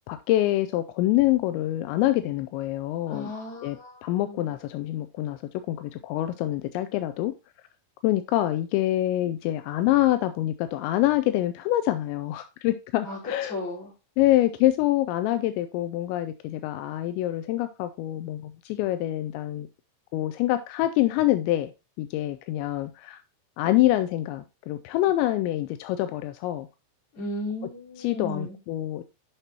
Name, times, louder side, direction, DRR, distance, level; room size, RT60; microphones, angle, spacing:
voice 1, 0.1-3.3 3.6-5.4 5.7-7.3 8.0-13.6 14.2-19.7 20.1-21.7 22.0-23.2 23.6-26.7 28.0-29.0, left 15 dB, 85° left, 2.6 m, -25 dB
voice 2, 3.1-4.5 13.0-13.9 27.1-28.6, left 1 dB, 30° left, 4.6 m, -35 dB
9.9 x 5.9 x 2.8 m
omnidirectional pair, 5.7 m